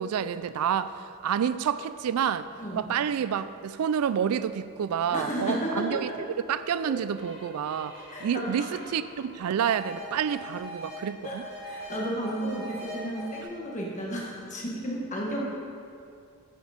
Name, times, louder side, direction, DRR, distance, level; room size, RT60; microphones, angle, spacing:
voice 1, 0.0-2.5 2.8-6.1 6.5-11.4, right 8 dB, 80° right, 14 dB, 0.3 m, -29 dB
voice 2, 5.1-6.2 6.8-7.0 8.1-8.7 11.2-11.4 11.6-15.4, equal, 35° left, -3 dB, 1.6 m, -33 dB
sound 1, 7.1-11.0 11.2-13.4, left 1 dB, 30° right, 2.4 m, -42 dB
10.5 x 6.3 x 5.1 m, 2.5 s
head